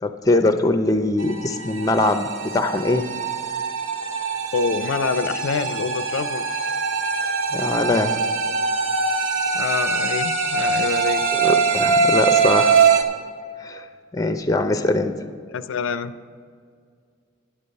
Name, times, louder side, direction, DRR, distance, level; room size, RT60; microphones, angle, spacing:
voice 1, 0.0-3.0 7.5-8.2 11.3-12.8 13.6-13.8 14.1-15.2, left 2 dB, 15° left, 8 dB, 0.5 m, -22 dB
sound 1, 1.2-13.0, right 5 dB, 80° right, 0.9 m, -22 dB
voice 2, 4.5-6.5 9.5-11.2 15.5-16.1, left 5 dB, 75° left, 12 dB, 0.4 m, -26 dB
10.0 x 7.0 x 6.4 m, 2.1 s
head